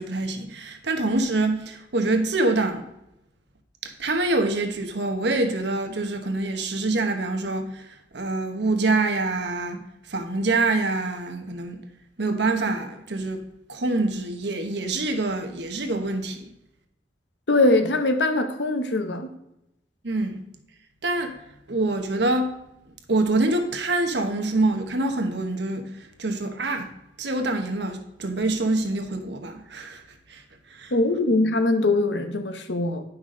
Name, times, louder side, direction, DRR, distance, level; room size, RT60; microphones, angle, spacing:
voice 1, 0.0-2.9 3.8-7.8 8.1-9.8 10.1-11.8 12.2-13.4 13.7-16.5 20.0-20.4 21.0-21.4 21.7-22.5 23.1-26.9 27.2-30.0 30.3-30.4 30.7-30.9, right 2 dB, 65° right, 1.2 m, -25 dB
voice 2, 17.5-19.3 30.9-33.0, left 2 dB, 70° left, 1.0 m, -22 dB
10.0 x 5.9 x 3.8 m
head